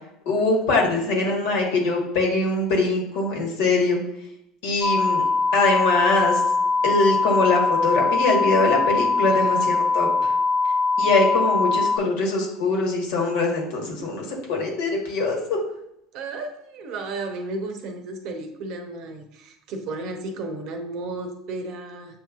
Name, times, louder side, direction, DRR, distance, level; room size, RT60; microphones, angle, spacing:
voice 1, 0.2-4.0 4.6-5.2 5.5-6.4 6.8-10.3 11.0-15.6, left 3 dB, 75° left, 0 dB, 1.4 m, -22 dB
sound 1, 4.8-12.0, left 4 dB, 25° left, 1.2 m, -22 dB
voice 2, 9.3-9.7 16.1-22.2, right 2 dB, 60° right, 5 dB, 0.8 m, -33 dB
7.2 x 2.8 x 2.4 m, 0.78 s
hypercardioid pair, 80°, 0 cm